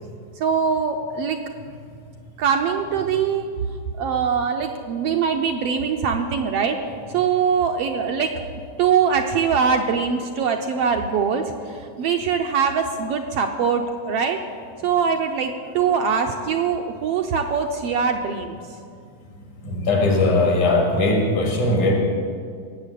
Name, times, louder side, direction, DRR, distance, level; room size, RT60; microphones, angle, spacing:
voice 1, 0.4-1.4 2.4-3.5 3.9-6.8 7.1-8.5 8.8-14.4 14.8-18.6, right 6 dB, 70° right, 4 dB, 1.5 m, -22 dB
voice 2, 19.6-22.0, left 2 dB, 80° left, 0 dB, 4.0 m, -19 dB
17.0 x 7.2 x 8.4 m, 2.2 s
omnidirectional pair, 3.3 m